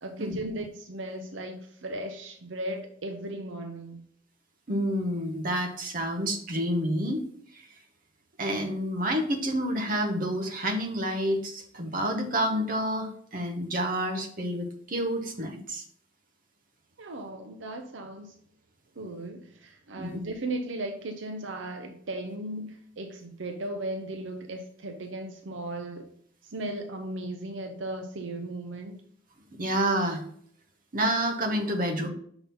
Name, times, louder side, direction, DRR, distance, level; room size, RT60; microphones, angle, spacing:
voice 1, 0.0-4.0 17.0-18.3 19.0-26.1 26.4-28.9, right 1 dB, 75° right, 4 dB, 0.7 m, -36 dB
voice 2, 4.7-7.2 8.4-15.8 20.0-20.2 29.6-30.2 30.9-32.1, right 1 dB, 45° right, 3 dB, 1.0 m, -29 dB
5.8 x 4.0 x 5.4 m, 0.63 s
head